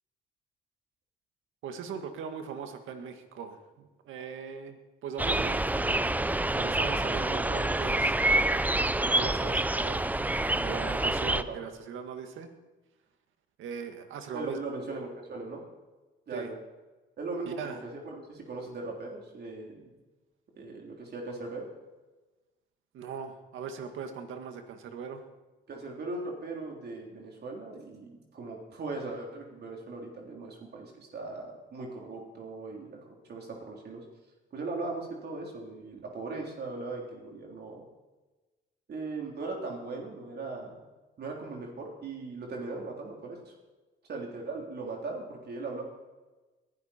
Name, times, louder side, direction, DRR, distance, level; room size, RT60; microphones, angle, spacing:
voice 1, 1.6-4.8 5.0-5.6 6.5-8.7 9.0-10.0 10.6-12.5 13.6-14.6 16.3-16.5 17.4-17.8 22.9-25.2, right 6 dB, 80° right, 7 dB, 1.8 m, -40 dB
sound 1, 5.2-11.4, right 1 dB, 10° right, 0.5 m, -27 dB
voice 2, 11.3-11.6 14.3-15.6 16.3-16.6 17.2-19.9 20.6-21.7 25.7-33.0 33.3-34.0 34.5-37.8 38.9-40.8 41.2-43.5 44.1-45.8, right 3 dB, 55° right, 0 dB, 3.6 m, -39 dB
21.0 x 12.0 x 4.4 m, 1.2 s
cardioid pair, 90°, 20 cm